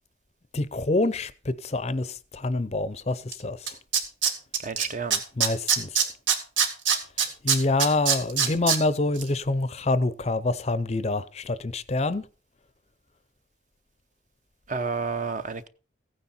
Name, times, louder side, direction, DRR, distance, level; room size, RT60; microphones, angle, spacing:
voice 1, 0.5-3.7 5.4-5.9 7.4-12.2, left 2 dB, 35° left, 0.6 m, -26 dB
Tools, 3.3-3.4 3.7-4.8 5.1-8.8 9.2-9.3, right 7 dB, 80° right, 2.2 m, -22 dB
voice 2, 4.6-5.2 14.7-15.7, right 5 dB, 40° right, 0.8 m, -30 dB
15.5 x 9.5 x 4.3 m
head